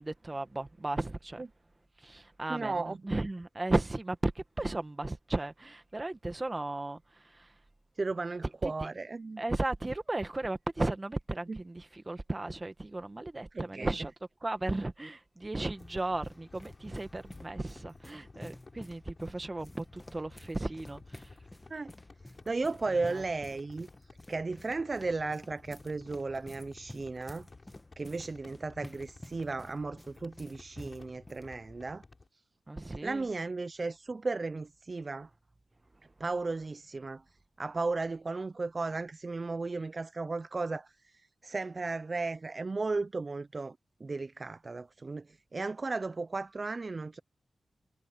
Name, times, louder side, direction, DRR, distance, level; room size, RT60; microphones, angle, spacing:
voice 1, 0.0-1.4 2.0-7.5 8.6-8.9 9.4-14.1 14.4-21.3 23.0-23.2 32.7-33.2, right 2 dB, 30° right, 1.7 m, -35 dB
voice 2, 2.5-3.0 8.0-9.4 11.5-11.6 13.5-13.9 21.7-21.9 22.5-23.9 24.3-27.5 28.0-32.0 33.0-35.3 36.2-37.2 37.6-43.8 44.0-47.2, right 3 dB, 45° right, 0.4 m, -35 dB
sound 1, 15.4-31.5, left 1 dB, 15° left, 1.7 m, -52 dB
sound 2, 15.6-32.3, left 3 dB, 40° left, 5.3 m, -54 dB
cardioid pair, 65°, 0 cm